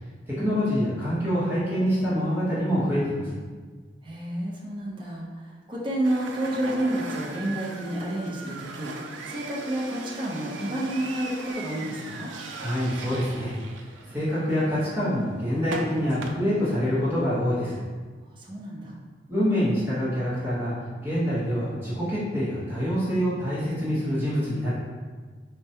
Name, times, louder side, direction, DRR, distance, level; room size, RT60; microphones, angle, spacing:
voice 1, 0.3-3.3 12.5-13.5 14.1-17.8 19.3-20.7 21.0-24.7, equal, 10° right, -10 dB, 0.9 m, -26 dB
voice 2, 4.0-12.3 18.4-19.0, right 1 dB, 30° right, -5 dB, 0.5 m, -30 dB
sound 1, 6.0-16.3, right 3 dB, 90° right, 0.4 m, -39 dB
4.5 x 2.2 x 2.7 m, 1.5 s
head